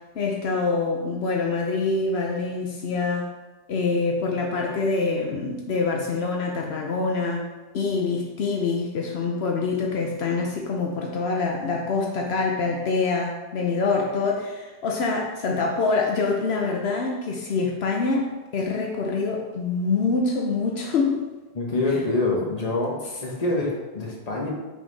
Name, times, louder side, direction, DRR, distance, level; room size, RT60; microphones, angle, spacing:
voice 1, 0.2-3.3 3.7-7.4 7.7-21.2, left 4 dB, 80° left, 0 dB, 1.0 m, -25 dB
voice 2, 21.5-24.5, left 2 dB, 40° left, -2 dB, 1.3 m, -26 dB
5.8 x 4.2 x 4.1 m, 1.2 s
omnidirectional pair, 1.1 m